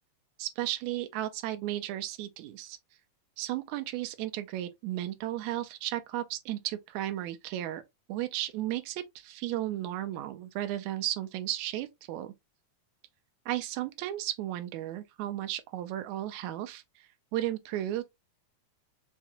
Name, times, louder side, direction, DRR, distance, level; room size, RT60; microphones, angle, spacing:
voice 1, 0.4-2.8 3.4-7.8 8.1-12.3 13.5-16.8 17.3-18.0, right 14 dB, 80° right, 1.9 m, -34 dB
5.8 x 2.2 x 2.7 m
omnidirectional pair, 3.3 m